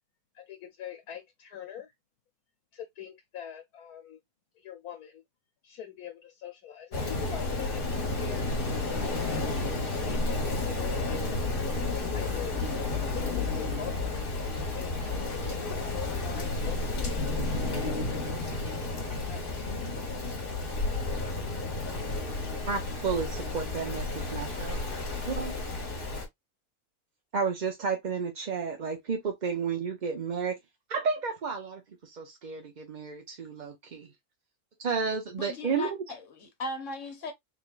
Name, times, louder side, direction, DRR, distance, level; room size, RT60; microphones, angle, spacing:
voice 1, 0.3-1.9 2.7-4.2 4.6-5.2 5.6-8.7 9.3-11.2 12.0-14.3 14.7-17.6 19.3-19.4, left 9 dB, 80° left, 1.3 m, -43 dB
Rain, 6.9-26.2, left 2 dB, 40° left, 1.4 m, -31 dB
voice 2, 22.7-24.8 25.2-25.6 27.3-30.6 30.9-34.1 34.8-36.0, right 5 dB, 45° right, 0.6 m, -32 dB
voice 3, 35.4-37.3, left 2 dB, 60° left, 1.2 m, -38 dB
3.9 x 3.4 x 2.4 m
omnidirectional pair, 1.6 m